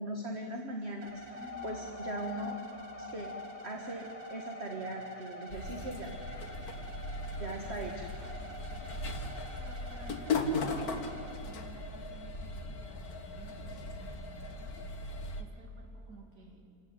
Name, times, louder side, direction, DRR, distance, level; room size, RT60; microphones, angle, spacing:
voice 1, 0.0-2.5 3.1-3.3 3.6-6.1 7.4-8.1, right 1 dB, 40° right, 2 dB, 1.9 m, -39 dB
sound 1, 1.0-11.4, right 3 dB, 90° right, 3.2 m, -48 dB
sound 2, 1.1-10.3 10.9-11.0, left 6 dB, 25° left, 2.1 m, -48 dB
voice 2, 1.4-1.7 2.3-2.6 7.5-8.5 8.8-16.6, right 1 dB, 70° right, 1 dB, 3.2 m, -55 dB
sound 3, 5.5-15.4, left 2 dB, 65° left, 1.9 m, -38 dB
27.5 x 15.0 x 9.9 m, 2.7 s
omnidirectional pair, 1.8 m